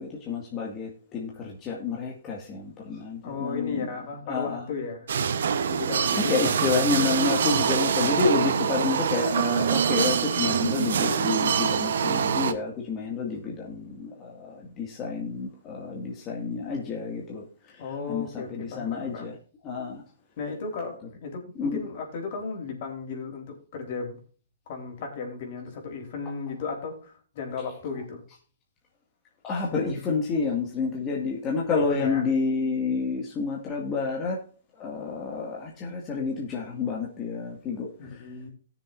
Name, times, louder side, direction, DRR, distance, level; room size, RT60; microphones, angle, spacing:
voice 1, 0.0-3.9 4.3-4.6 6.2-17.4 18.1-18.3 18.6-19.3 19.6-20.0 21.6-21.8 29.4-34.4 34.8-37.9, left 5 dB, 25° left, 2.1 m, -29 dB
voice 2, 3.2-5.1 5.7-6.8 17.8-19.3 20.4-24.2 24.7-28.2 31.7-32.3 38.0-38.5, left 4 dB, 50° left, 3.9 m, -35 dB
sound 1, 5.1-12.5, right 7 dB, 75° right, 1.0 m, -24 dB
17.5 x 7.0 x 2.6 m
hypercardioid pair, 140°, 0 cm